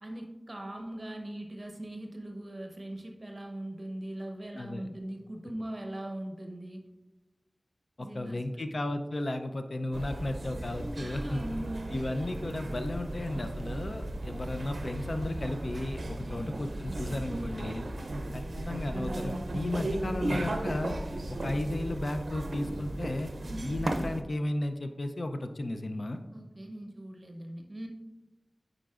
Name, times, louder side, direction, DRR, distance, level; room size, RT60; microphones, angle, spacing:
voice 1, 0.0-6.9 8.0-8.6 11.0-11.9 16.2-16.6 23.4-23.7 26.3-27.9, right 1 dB, 40° right, 3 dB, 0.8 m, -40 dB
voice 2, 4.5-4.9 8.0-11.4 11.9-17.9 18.3-21.0 21.3-23.3 23.6-26.2, left 1 dB, 65° left, 7 dB, 0.5 m, -34 dB
sound 1, 9.9-24.2, right 1 dB, 85° right, 0.5 m, -35 dB
9.0 x 4.9 x 2.4 m, 1.1 s
wide cardioid pair, 55°, 0 cm